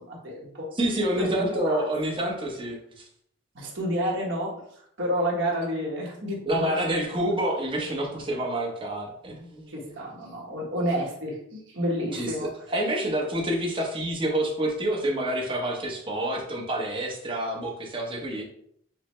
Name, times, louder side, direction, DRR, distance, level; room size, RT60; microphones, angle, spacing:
voice 1, 0.0-0.7 1.2-1.8 3.5-4.6 5.0-6.7 9.7-12.5, equal, 65° right, -3 dB, 1.1 m, -30 dB
voice 2, 0.8-3.0 6.4-10.0 12.1-18.4, right 1 dB, 25° right, -1 dB, 0.8 m, -28 dB
6.0 x 2.1 x 3.1 m, 0.68 s
head